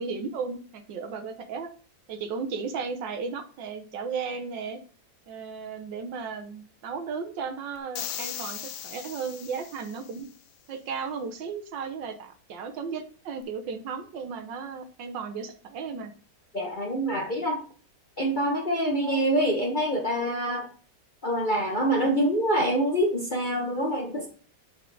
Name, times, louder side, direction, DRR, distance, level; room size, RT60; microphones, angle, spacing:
voice 1, 0.0-1.7 2.1-4.8 5.3-10.3 10.7-16.1, right 5 dB, 75° right, 7 dB, 1.6 m, -35 dB
sound 1, 7.9-10.2, left 11 dB, 85° left, 1.4 m, -38 dB
voice 2, 16.5-17.6 18.2-20.7 21.2-24.3, right 1 dB, 35° left, 1 dB, 0.8 m, -25 dB
6.1 x 4.8 x 4.6 m, 0.42 s
omnidirectional pair, 2.0 m